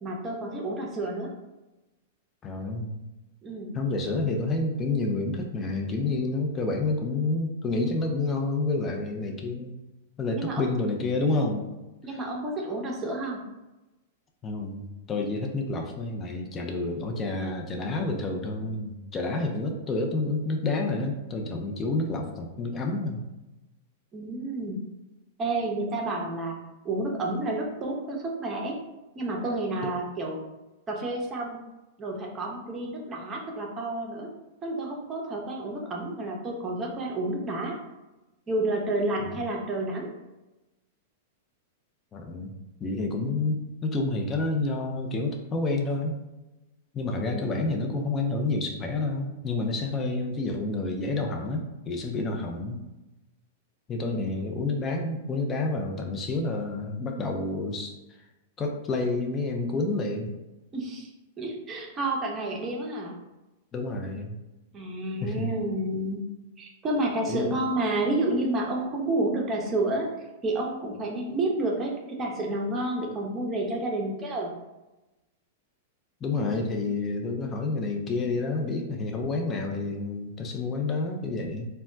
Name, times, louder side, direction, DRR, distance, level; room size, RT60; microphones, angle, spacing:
voice 1, 0.0-1.3 3.4-3.7 10.3-10.8 12.0-13.4 24.1-24.8 25.4-26.6 26.8-28.8 29.2-30.4 30.9-31.6 32.0-34.3 34.6-37.8 38.5-40.1 43.2-43.4 47.2-47.7 52.2-52.4 54.0-54.3 60.7-61.1 61.4-63.2 64.7-66.3 66.6-70.1 70.4-74.5, right 2 dB, 25° right, -1 dB, 0.6 m, -30 dB
voice 2, 2.4-3.0 3.7-9.7 10.2-11.7 12.1-12.2 14.4-23.2 39.2-39.3 42.1-42.5 42.8-46.2 46.9-52.8 53.9-57.9 58.6-60.3 63.7-64.4 65.2-65.5 67.3-67.6 76.2-81.7, left 3 dB, 25° left, 2 dB, 0.5 m, -29 dB
2.2 x 2.1 x 3.8 m, 1.0 s
hypercardioid pair, 120°, 0 cm